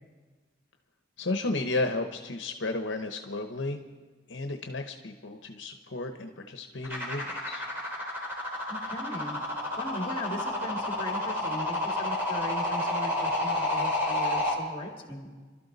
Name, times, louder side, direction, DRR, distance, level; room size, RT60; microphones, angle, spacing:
voice 1, 1.2-3.8 4.3-7.6, left 2 dB, 70° left, 5 dB, 0.9 m, -33 dB
sound 1, 6.8-14.5, left 1 dB, 10° right, 3.3 m, -30 dB
voice 2, 8.7-9.4 9.8-15.3, left 1 dB, 25° left, 2 dB, 2.3 m, -38 dB
26.5 x 12.5 x 4.0 m, 1.4 s
head